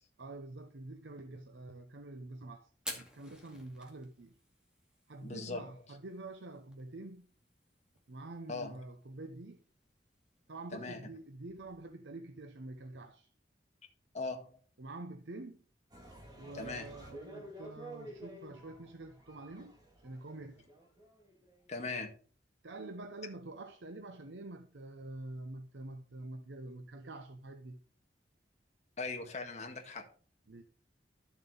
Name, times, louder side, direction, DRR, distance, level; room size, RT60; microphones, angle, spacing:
voice 1, 0.2-4.3 5.1-7.3 8.1-9.6 10.5-13.3 14.8-15.6 16.4-19.8 20.0-20.6 22.6-27.8 30.5-30.6, right 2 dB, 90° right, 0.8 m, -47 dB
Fire, 2.7-11.9, left 1 dB, 5° right, 2.2 m, -53 dB
voice 2, 5.2-5.6 8.5-8.7 10.7-11.0 14.1-14.6 16.5-16.9 21.7-22.1 29.0-30.0, left 3 dB, 40° left, 1.8 m, -39 dB
sound 1, 15.9-21.5, right 1 dB, 25° right, 2.8 m, -51 dB
12.0 x 7.3 x 4.0 m
head